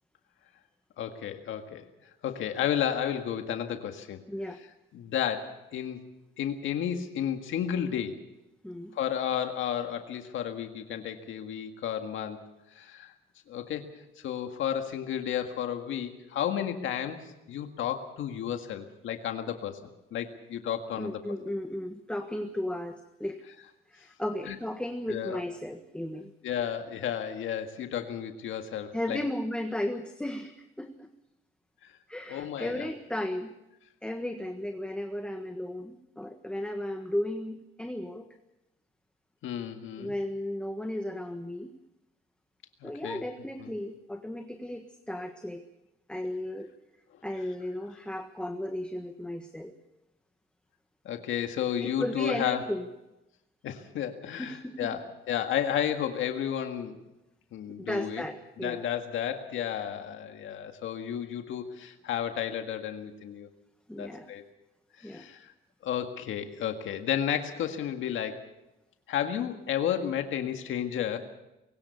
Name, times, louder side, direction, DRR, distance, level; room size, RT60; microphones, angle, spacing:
voice 1, 1.0-1.8 2.2-4.2 4.9-6.0 6.4-8.2 8.9-12.4 12.7-13.1 13.5-13.9 14.2-19.8 20.1-21.2 24.5-24.6 25.1-25.4 26.4-29.2 31.8-31.9 32.3-32.9 39.4-40.1 42.8-43.2 43.6-43.7 51.1-52.7 53.6-57.0 57.5-58.2 58.6-63.5 64.0-64.4 65.0-65.5 65.8-68.5 69.1-71.2, left 9 dB, 80° left, 6 dB, 1.9 m, -32 dB
voice 2, 4.3-4.6 8.6-9.0 21.0-23.4 23.9-26.3 28.9-31.1 32.1-33.6 34.0-38.3 40.0-41.8 42.8-45.6 46.1-46.7 47.2-49.7 51.8-52.9 54.4-54.9 57.8-58.8 63.9-64.3 65.0-65.3, left 1 dB, 5° left, 6 dB, 1.5 m, -35 dB
21.5 x 17.5 x 7.0 m, 0.94 s
cardioid pair, 90°, 20 cm